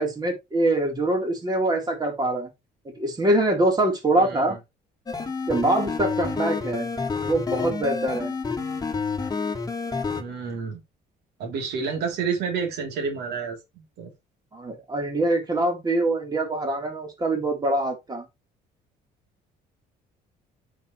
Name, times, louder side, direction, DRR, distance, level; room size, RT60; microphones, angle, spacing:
voice 1, 0.0-2.5 3.0-4.6 5.5-6.9 7.2-8.3 14.5-18.2, right 1 dB, 25° right, 3.4 m, -24 dB
voice 2, 4.1-4.6 10.2-10.8 11.4-14.1, right 5 dB, 80° right, 3.1 m, -30 dB
sound 1, 5.1-10.2, left 4 dB, 20° left, 1.9 m, -29 dB
9.5 x 6.0 x 3.1 m
cardioid pair, 110°, 17 cm